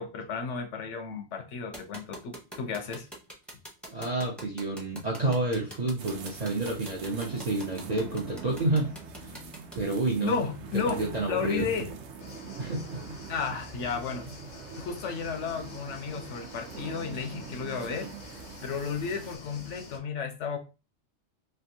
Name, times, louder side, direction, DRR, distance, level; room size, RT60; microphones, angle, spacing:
voice 1, 0.0-3.1 10.2-11.9 13.3-14.3 14.8-20.6, left 5 dB, 75° left, 0.9 m, -33 dB
sound 1, 1.7-9.8, right 1 dB, ahead, 0.5 m, -43 dB
voice 2, 3.8-8.9 9.2-9.3 9.7-10.3 10.9-11.7 12.6-13.0, right 2 dB, 50° right, 0.5 m, -29 dB
sound 2, 6.0-19.4, right 5 dB, 70° right, 0.9 m, -43 dB
sound 3, 12.2-20.0, left 3 dB, 50° left, 0.6 m, -48 dB
3.4 x 2.5 x 2.7 m
omnidirectional pair, 1.3 m